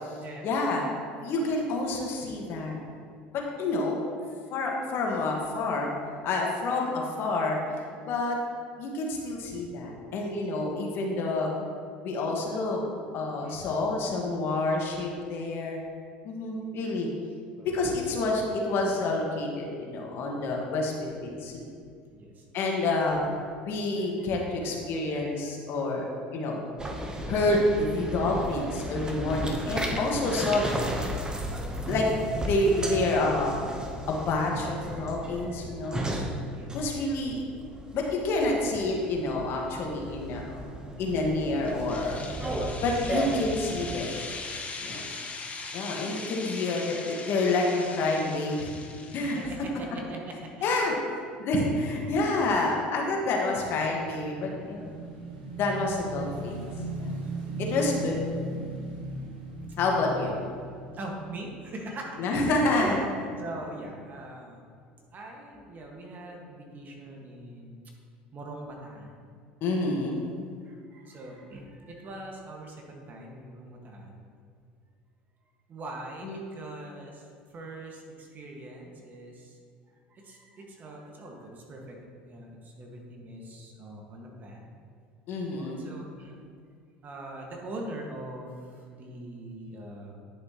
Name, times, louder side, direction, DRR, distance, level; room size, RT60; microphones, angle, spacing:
voice 1, 0.4-0.9 1.2-2.8 3.3-4.0 4.5-5.9 6.2-8.4 8.8-11.5 12.0-12.8 13.1-15.8 16.2-17.1 17.6-21.7 22.5-23.2 23.6-26.6 27.3-30.9 31.9-32.1 32.4-33.6 34.1-36.1 36.7-37.4 37.9-40.6 41.0-42.2 42.8-44.1 44.8-45.0 45.7-48.8 49.1-49.4 50.6-50.9 51.4-54.9 55.6-56.5 57.0-57.1 57.6-58.2 59.8-60.3 62.2-63.0 69.6-70.3 76.2-76.4 85.3-85.9, left 2 dB, 55° left, 0 dB, 1.5 m, -28 dB
voice 2, 4.2-4.7 13.4-13.6 17.6-17.7 22.1-22.5 24.0-24.6 25.1-25.6 31.8-32.0 34.8-36.0 36.5-36.7 44.8-45.0 49.2-50.5 51.9-52.2 54.4-54.5 60.9-62.9 63.2-64.7 65.1-67.9 68.3-69.3 70.6-74.2 75.7-79.6 80.1-82.0 82.2-84.7 85.6-86.4 87.0-90.2, right 2 dB, 40° right, 0 dB, 1.7 m, -42 dB
sound 1, 26.8-44.0, right 1 dB, 15° right, 1.0 m, -35 dB
sound 2, 41.7-49.5, left 3 dB, 30° left, 1.2 m, -40 dB
Motorcycle / Engine, 53.5-62.0, right 2 dB, 90° right, 1.3 m, -37 dB
10.5 x 6.5 x 3.0 m, 2.2 s
hypercardioid pair, 80°, 5 cm